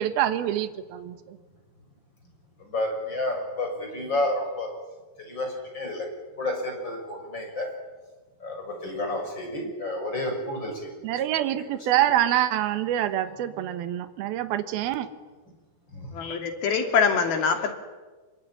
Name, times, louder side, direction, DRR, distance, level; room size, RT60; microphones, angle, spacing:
voice 1, 0.0-1.4 11.0-15.1, right 12 dB, 75° right, 10 dB, 3.1 m, -26 dB
voice 2, 2.7-4.7 5.3-5.5 5.7-6.1 6.4-7.7 8.4-8.6 8.8-10.7 11.4-11.5 15.9-16.1, left 1 dB, 25° left, 3 dB, 6.7 m, -30 dB
voice 3, 16.1-17.7, left 6 dB, 70° left, 5 dB, 4.7 m, -24 dB
25.5 x 24.0 x 9.8 m, 1.3 s
omnidirectional pair, 4.6 m